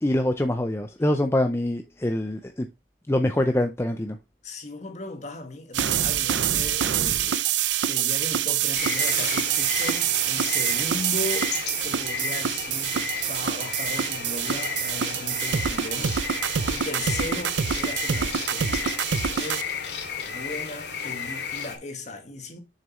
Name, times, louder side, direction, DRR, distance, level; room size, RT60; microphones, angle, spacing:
voice 1, 0.0-2.7 3.1-4.2, left 1 dB, 15° left, 0.5 m, -24 dB
voice 2, 4.4-11.5 11.8-18.9 19.3-19.7 20.2-22.6, left 2 dB, 40° left, 1.7 m, -37 dB
sound 1, 5.7-19.6, right 9 dB, 80° right, 0.6 m, -26 dB
sound 2, 8.7-21.8, left 5 dB, 65° left, 2.2 m, -33 dB
7.0 x 6.6 x 3.1 m
head